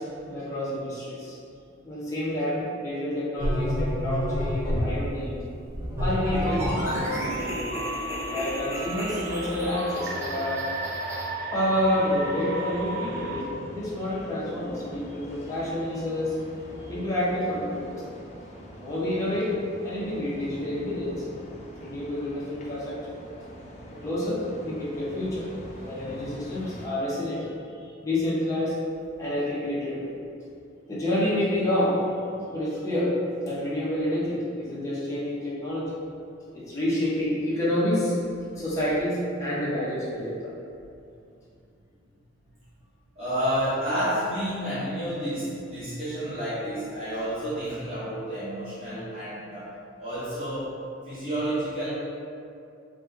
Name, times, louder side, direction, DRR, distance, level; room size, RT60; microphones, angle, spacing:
voice 1, 0.0-1.4 1.8-5.3 6.0-7.7 8.2-10.6 11.5-16.4 16.9-18.0 18.8-19.5 19.8-21.2 21.6-23.0 24.0-25.5 25.8-27.4 27.8-28.8 29.2-30.1 30.9-32.0 32.5-33.2 33.4-35.9 36.5-38.1 38.5-40.6, left 1 dB, 15° left, -9 dB, 0.9 m, -28 dB
sound 1, 3.4-5.0 5.7-11.2, equal, 15° right, 0.7 m, -30 dB
sound 2, 6.2-13.4, right 2 dB, 50° right, 0.3 m, -35 dB
sound 3, 11.5-26.9, equal, 35° left, 0.4 m, -45 dB
voice 2, 43.1-50.7 51.0-51.9, equal, 30° right, -12 dB, 1.0 m, -30 dB
4.2 x 2.4 x 3.7 m, 2.5 s
head